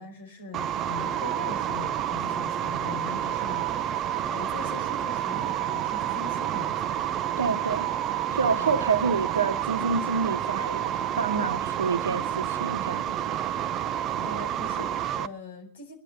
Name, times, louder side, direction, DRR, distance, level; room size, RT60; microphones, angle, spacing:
voice 1, 0.0-3.7 4.0-6.8 14.1-15.9, left 4 dB, 65° left, 5.3 m, -41 dB
sound 1, 0.5-15.3, right 11 dB, 30° right, 0.8 m, -29 dB
voice 2, 7.4-7.9 8.3-13.1, right 5 dB, 70° right, 1.3 m, -28 dB
22.5 x 11.5 x 5.4 m
figure-of-eight pair, 90°, 0 cm